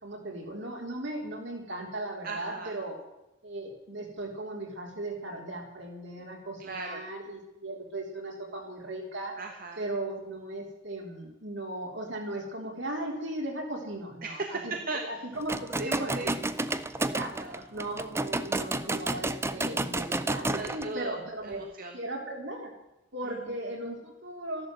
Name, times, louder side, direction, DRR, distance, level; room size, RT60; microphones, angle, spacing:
voice 1, 0.0-3.0 3.4-9.3 9.8-14.7 15.0-16.3 16.7-16.8 17.1-17.3 17.7-21.6 21.9-22.7 23.1-24.7, right 1 dB, 60° right, 1 dB, 3.8 m, -37 dB
voice 2, 2.2-2.7 6.6-7.0 9.4-9.8 14.2-15.2 15.8-16.3 17.3-17.6 20.5-22.0 23.2-23.6, right 3 dB, 45° right, 3 dB, 1.3 m, -38 dB
sound 1, 15.4-20.9, right 2 dB, 15° right, 0.5 m, -31 dB
14.0 x 11.5 x 7.9 m, 0.90 s
head